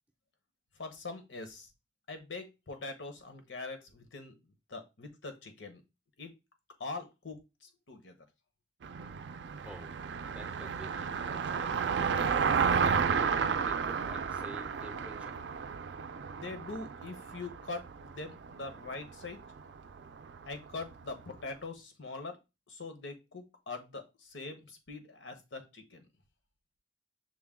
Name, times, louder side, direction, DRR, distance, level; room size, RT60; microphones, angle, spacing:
voice 1, 0.8-1.7 2.1-4.3 4.7-5.8 6.2-6.3 6.8-7.4 7.9-8.2 16.2-19.4 20.5-22.4 22.7-26.0, left 3 dB, 90° left, 7 dB, 1.0 m, -43 dB
Car passing by, 8.8-21.1, right 6 dB, 75° right, 0.4 m, -33 dB
voice 2, 10.2-12.1 13.0-15.4, right 1 dB, 5° right, 6 dB, 0.4 m, -49 dB
6.1 x 2.2 x 3.6 m, 0.25 s
head